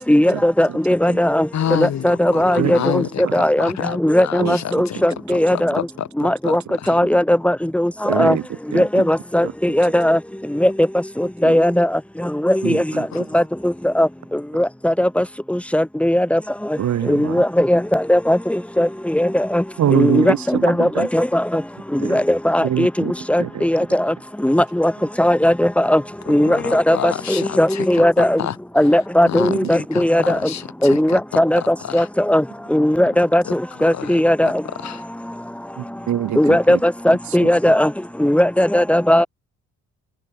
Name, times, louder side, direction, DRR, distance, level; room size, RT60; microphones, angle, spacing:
voice 1, 0.1-1.5 1.8-3.0 3.3-3.7 4.0-5.7 6.2-6.6 6.9-7.9 8.2-8.4 8.7-10.2 10.6-10.7 11.2-11.9 12.4-12.8 13.3-14.1 14.6-15.2 15.5-16.4 17.1-19.6 19.9-21.6 22.1-22.9 23.3-24.1 24.4-24.9 25.2-26.0 26.3-28.4 28.8-30.4 30.8-31.6 31.9-32.4 32.7-33.4 33.8-34.5 36.4-37.9 38.2-39.3, left 1 dB, 5° left, 4.8 m, -17 dB
voice 2, 1.5-5.0 5.5-7.0 13.1-13.2 26.5-28.6 29.3-32.1 33.4-33.5 33.9-34.2 34.8-35.1, left 10 dB, 65° left, 4.3 m, -29 dB
voice 3, 4.4-4.8 8.1-8.5 8.7-9.1 9.4-9.5 11.4-11.6 12.6-13.1 16.8-17.4 19.8-21.1 22.0-22.2 22.6-23.7 29.4-29.7 35.8-36.8 37.4-37.5, right 11 dB, 70° right, 4.9 m, -24 dB
cardioid pair, 90°, 30 cm